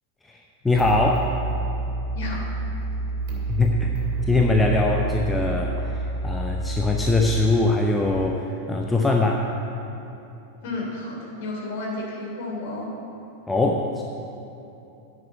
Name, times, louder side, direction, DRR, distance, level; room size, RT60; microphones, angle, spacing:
voice 1, 0.3-1.3 3.5-4.0 4.3-9.5 13.5-14.0, left 2 dB, 10° left, 1 dB, 0.7 m, -22 dB
sound 1, 0.7-7.4, right 3 dB, 45° right, 2.7 m, -29 dB
voice 2, 2.1-2.4 10.6-12.9, left 2 dB, 50° left, -2 dB, 2.9 m, -32 dB
10.5 x 6.6 x 8.5 m, 2.9 s
figure-of-eight pair, 90°, 0 cm